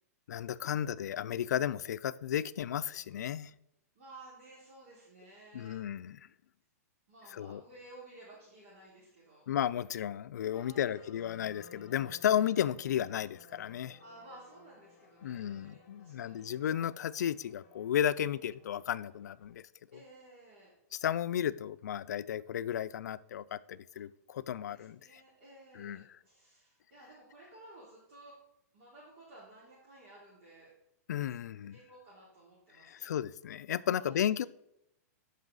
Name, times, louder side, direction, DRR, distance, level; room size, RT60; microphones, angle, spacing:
voice 1, 0.3-3.5 5.5-6.2 7.3-7.6 9.5-14.0 15.2-19.6 19.9-20.0 20.9-25.2 25.7-26.0 31.1-31.8 32.8-34.5, left 10 dB, 85° left, 0.4 m, -33 dB
voice 2, 3.9-5.8 7.1-9.5 10.5-11.1 14.0-16.5 19.9-20.7 23.9-24.0 24.5-28.3 28.7-30.7 31.7-33.1 33.8-34.2, right 2 dB, 45° right, 3.1 m, -55 dB
sound 1, 10.5-19.5, left 5 dB, 30° left, 1.8 m, -59 dB
13.5 x 5.6 x 4.0 m
supercardioid pair, 170°, 9 cm